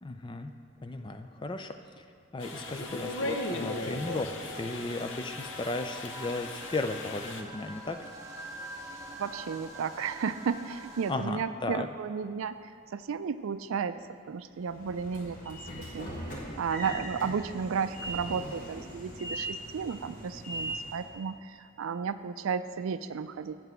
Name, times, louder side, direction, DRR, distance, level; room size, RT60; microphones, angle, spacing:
voice 1, 0.0-2.0 2.3-8.2 11.1-11.9, left 2 dB, 25° left, 7 dB, 0.4 m, -35 dB
sound 1, 2.4-7.4, left 2 dB, 70° left, 0.7 m, -38 dB
sound 2, 2.4-11.1, right 1 dB, 15° right, 1.0 m, -45 dB
voice 2, 9.2-12.6 12.9-14.0 14.3-15.6 15.9-23.6, right 6 dB, 85° right, 12 dB, 0.4 m, -33 dB
Train / Sliding door, 14.6-21.1, right 1 dB, 40° left, 1.6 m, -40 dB
7.6 x 6.1 x 7.9 m, 2.3 s
head